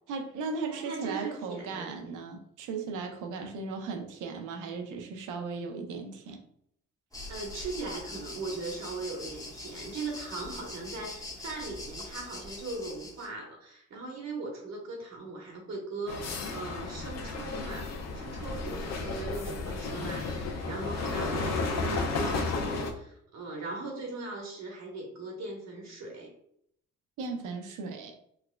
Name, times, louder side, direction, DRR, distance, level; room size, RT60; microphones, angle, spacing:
voice 1, 0.1-6.4 27.2-28.2, right 4 dB, 90° right, 5 dB, 0.6 m, -37 dB
voice 2, 0.7-1.9 3.4-3.5 7.3-26.3, right 3 dB, 60° right, 1 dB, 1.2 m, -39 dB
sound 1, 7.1-13.3, left 2 dB, 10° left, 0.9 m, -43 dB
sound 2, 16.1-22.9, left 3 dB, 60° left, 0.7 m, -33 dB
4.6 x 2.2 x 2.2 m, 0.71 s
cardioid pair, 90°, 30 cm